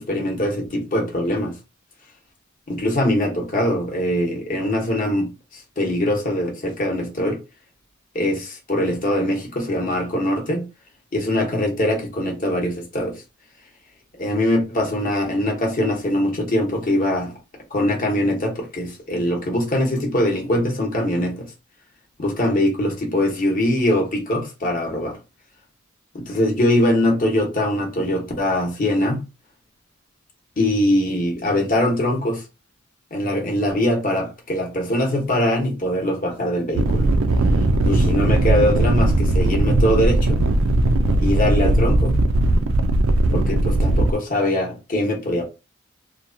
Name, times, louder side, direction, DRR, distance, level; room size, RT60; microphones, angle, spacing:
voice 1, 0.0-1.5 2.7-7.4 8.1-10.7 11.1-13.2 14.2-17.3 17.7-21.5 22.2-25.2 26.1-29.2 30.6-32.4 33.1-37.1 37.9-40.4 41.2-42.2 43.3-45.4, left 1 dB, 40° left, 0.9 m, -22 dB
sound 1, 36.7-44.1, right 2 dB, 85° right, 0.4 m, -18 dB
2.9 x 2.1 x 2.6 m
head